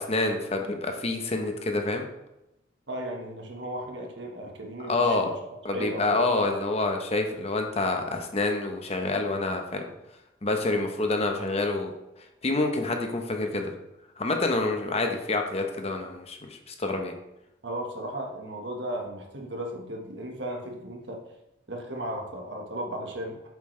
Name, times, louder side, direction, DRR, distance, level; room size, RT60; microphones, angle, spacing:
voice 1, 0.0-2.1 4.9-5.3 5.6-9.8 10.4-11.9 12.4-13.7 14.2-17.1, left 2 dB, 30° left, 4 dB, 1.0 m, -27 dB
voice 2, 2.9-5.3 5.7-6.3 17.6-21.2 21.7-23.5, right 1 dB, 60° right, 1 dB, 1.5 m, -35 dB
8.3 x 7.2 x 3.3 m, 0.92 s
head